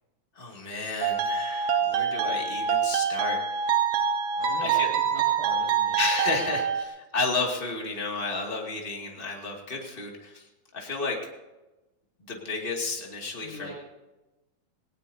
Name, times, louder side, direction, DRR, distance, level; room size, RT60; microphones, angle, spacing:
voice 1, 0.4-3.6 4.6-4.9 6.0-10.5 10.7-11.2 12.3-13.7, left 3 dB, 20° left, 0 dB, 2.0 m, -32 dB
sound 1, 1.0-6.8, right 7 dB, 65° right, 2.0 m, -26 dB
voice 2, 4.4-4.8 5.1-6.0 13.4-13.7, left 1 dB, 75° left, -6 dB, 8.4 m, -41 dB
19.0 x 18.5 x 2.8 m, 1.1 s
omnidirectional pair, 3.8 m